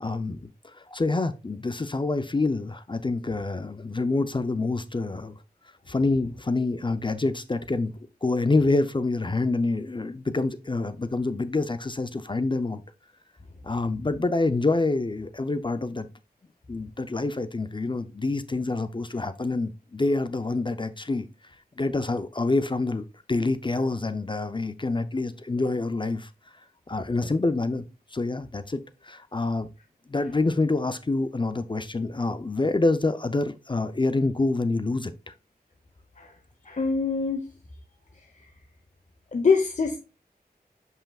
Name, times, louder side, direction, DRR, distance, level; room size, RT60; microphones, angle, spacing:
voice 1, 0.0-5.3 5.9-12.8 13.6-16.1 16.7-21.3 21.8-26.3 26.9-27.8 28.1-29.7 30.1-35.3, left 3 dB, 30° left, 0.6 m, -27 dB
voice 2, 36.6-37.5 39.3-40.0, left 4 dB, 50° left, 0.9 m, -24 dB
7.1 x 5.6 x 2.3 m
wide cardioid pair, 65°, 16 cm